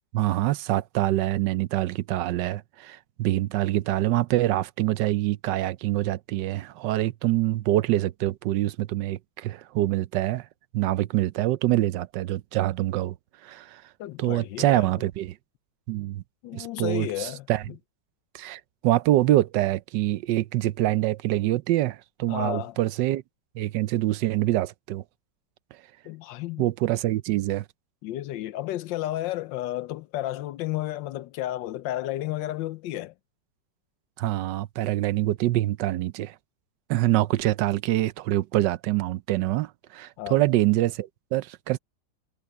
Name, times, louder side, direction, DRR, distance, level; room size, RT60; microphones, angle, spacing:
voice 1, 0.1-10.5 10.7-13.1 13.4-13.8 14.2-15.4 15.9-16.2 16.5-17.6 18.3-23.2 23.6-25.0 26.6-27.6 34.2-36.3 36.9-41.8, right 15 dB, 75° right, 1.2 m, -25 dB
voice 2, 14.0-14.9 16.4-17.8 22.3-22.8 26.0-26.7 28.0-33.1 40.2-40.4, left 14 dB, 85° left, 1.4 m, -32 dB
omnidirectional pair, 2.0 m